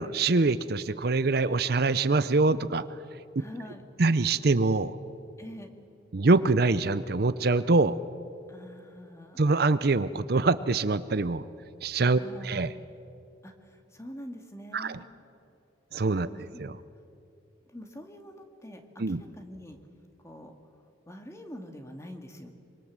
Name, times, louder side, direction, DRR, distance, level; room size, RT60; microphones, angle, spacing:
voice 1, 0.0-2.8 4.0-5.0 6.1-8.0 9.4-11.4 11.8-12.7 14.7-15.0 15.9-16.3 16.6-16.7 19.0-19.2, right 3 dB, 55° right, 14 dB, 0.6 m, -24 dB
voice 2, 3.4-3.8 5.4-5.7 8.5-9.5 12.2-12.6 13.4-15.1 16.3-16.6 17.6-19.8 20.2-20.5 21.1-22.5, equal, 15° left, 5 dB, 2.0 m, -45 dB
25.0 x 24.0 x 7.4 m, 2.7 s
head